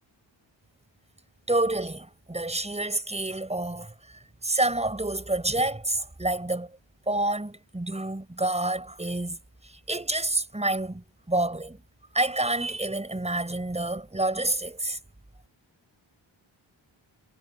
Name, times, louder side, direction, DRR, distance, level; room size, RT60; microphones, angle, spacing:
voice 1, 1.5-6.7 7.1-9.4 9.6-11.8 12.1-15.0, right 2 dB, 15° right, 6.8 m, -28 dB
wide cardioid pair, 150°, 47 cm